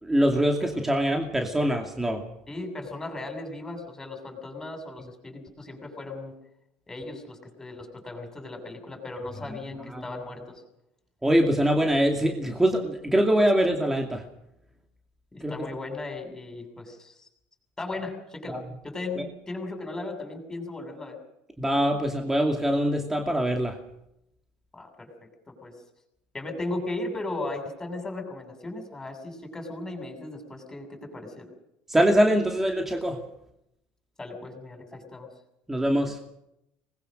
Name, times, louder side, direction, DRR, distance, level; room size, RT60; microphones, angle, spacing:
voice 1, 0.0-2.2 9.9-10.0 11.2-14.2 15.4-15.5 18.5-18.6 21.6-23.7 31.9-33.2 35.7-36.2, equal, 10° right, 2 dB, 2.6 m, -23 dB
voice 2, 2.5-6.3 6.9-10.6 15.3-17.3 17.8-18.6 18.8-21.2 24.7-25.8 26.3-31.5 34.2-35.3, left 2 dB, 15° left, 4 dB, 7.2 m, -37 dB
24.5 x 20.5 x 6.6 m, 0.82 s
cardioid pair, 135°, 4 cm